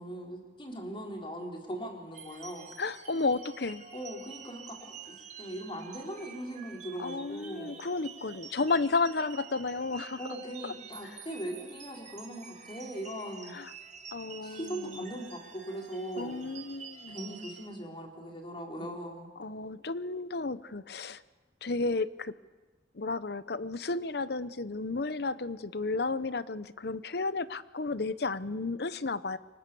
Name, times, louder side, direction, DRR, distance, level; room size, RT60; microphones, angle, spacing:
voice 1, 0.0-2.7 3.9-7.7 10.2-13.5 14.4-16.5 17.1-19.3, right 1 dB, 30° left, 1 dB, 4.3 m, -40 dB
sound 1, 2.1-17.7, right 6 dB, 40° right, 2.2 m, -49 dB
voice 2, 2.8-3.9 7.0-10.2 10.6-10.7 13.5-13.7 14.1-15.1 16.2-17.3 19.4-21.2 21.6-22.4 22.9-29.4, left 3 dB, 60° left, 15 dB, 0.9 m, -32 dB
28.0 x 24.5 x 7.0 m, 1.3 s
head